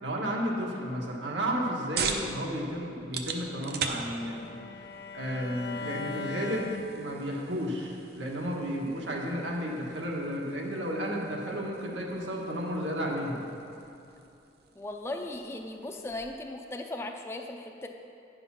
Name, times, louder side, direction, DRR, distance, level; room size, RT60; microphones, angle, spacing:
voice 1, 0.0-4.6 5.1-6.7 6.9-13.4, equal, 80° right, -2 dB, 1.4 m, -32 dB
sound 1, 1.3-16.4, right 5 dB, 55° right, 0.6 m, -42 dB
Bowed string instrument, 3.3-7.5, left 3 dB, 60° left, 0.5 m, -41 dB
voice 2, 14.8-17.9, left 2 dB, 15° left, 2 dB, 0.5 m, -37 dB
9.9 x 5.5 x 5.7 m, 2.7 s
head